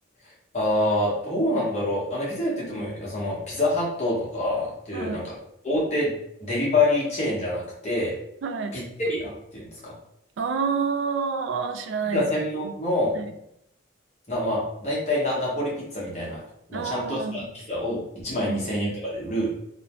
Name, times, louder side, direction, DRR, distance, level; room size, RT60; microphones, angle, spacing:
voice 1, 0.5-5.2 5.6-6.1 6.4-8.1 8.7-9.9 12.1-13.1 14.3-16.4 16.7-19.5, left 1 dB, 35° left, -5 dB, 0.9 m, -26 dB
voice 2, 4.9-5.3 8.4-8.7 10.4-12.3 12.6-12.7 13.1-13.3 16.7-17.4 18.4-18.6, right 5 dB, 75° right, 6 dB, 0.3 m, -28 dB
2.6 x 2.1 x 2.9 m, 0.77 s
head